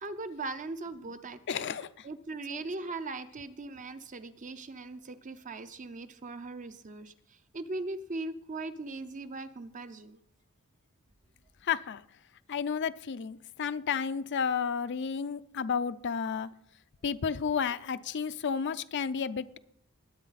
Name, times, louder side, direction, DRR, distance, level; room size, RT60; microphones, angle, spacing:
voice 1, 0.0-1.8 2.0-7.1 7.5-10.2, right 3 dB, 35° right, 10 dB, 0.7 m, -39 dB
voice 2, 1.5-1.9 2.5-2.6 11.6-12.0 12.5-16.5 17.0-19.6, left 6 dB, 55° left, 12 dB, 0.5 m, -32 dB
20.0 x 8.4 x 4.1 m, 0.74 s
head